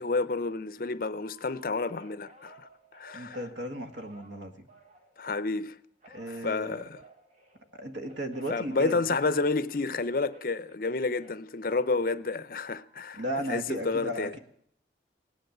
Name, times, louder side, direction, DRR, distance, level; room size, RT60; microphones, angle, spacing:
voice 1, 0.0-3.4 5.2-5.8 6.1-7.0 8.5-13.2 13.5-14.3, left 3 dB, 50° left, 0.6 m, -30 dB
Telephone, 1.2-5.6 6.0-9.5 9.7-12.2 12.7-13.2, right 2 dB, 40° right, 2.1 m, -57 dB
voice 2, 3.1-4.7 6.1-6.8 7.8-9.2 13.2-14.4, equal, 85° right, 1.8 m, -35 dB
17.0 x 10.5 x 7.9 m
head